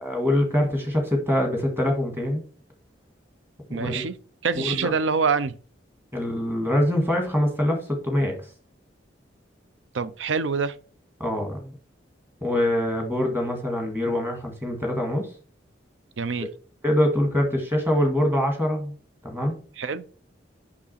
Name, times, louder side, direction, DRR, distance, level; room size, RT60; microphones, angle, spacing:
voice 1, 0.0-2.4 3.7-4.0 4.6-4.9 6.1-8.4 11.2-11.7 12.4-15.3 16.8-18.9 19.2-19.5, left 1 dB, 10° right, 1.7 m, -24 dB
voice 2, 3.7-4.1 4.4-5.6 9.9-10.8 16.2-16.5 19.8-20.0, right 5 dB, 75° right, 0.5 m, -25 dB
6.2 x 5.9 x 4.2 m
head